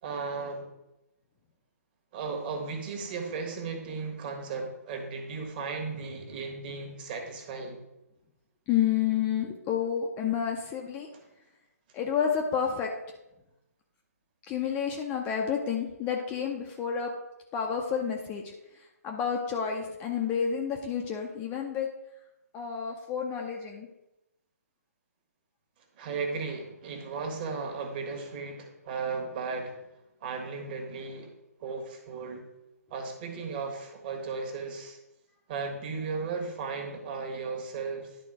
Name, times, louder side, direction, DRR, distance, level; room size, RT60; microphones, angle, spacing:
voice 1, 0.0-0.7 2.1-7.8 11.1-11.2 26.0-29.9 30.2-31.3 31.6-32.4 32.9-35.0 35.5-38.2, right 4 dB, 30° right, 3 dB, 1.4 m, -35 dB
voice 2, 8.7-11.1 11.9-12.9 14.5-17.1 17.5-18.4 19.0-21.9 22.5-23.9, left 8 dB, 15° left, 1 dB, 0.6 m, -30 dB
10.5 x 3.8 x 4.8 m, 0.93 s
figure-of-eight pair, 140°, 9 cm